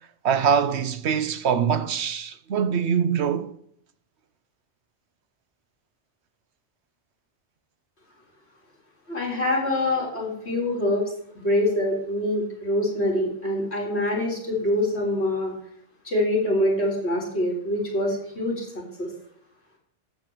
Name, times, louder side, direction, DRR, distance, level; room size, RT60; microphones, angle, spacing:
voice 1, 0.2-3.5, right 7 dB, 80° right, 1.1 m, -23 dB
voice 2, 9.1-11.1 11.3-15.5 16.0-18.7 19.0-19.1, left 1 dB, 75° left, 4.1 m, -25 dB
13.5 x 4.5 x 8.0 m
omnidirectional pair, 1.1 m